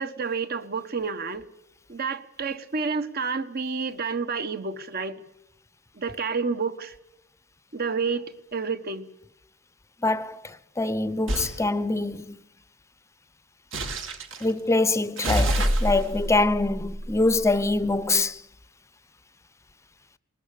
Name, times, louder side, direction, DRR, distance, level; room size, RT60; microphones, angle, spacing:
voice 1, 0.0-1.4 1.9-5.2 6.0-6.9 7.7-8.2 8.5-9.1, right 5 dB, 50° right, 1.3 m, -29 dB
voice 2, 10.0-10.4 10.8-12.4 14.4-18.3, left 2 dB, 15° left, 0.7 m, -24 dB
sound 1, 11.3-11.6 13.7-14.4 15.2-17.8, equal, 65° right, 2.3 m, -27 dB
20.0 x 20.0 x 8.4 m
head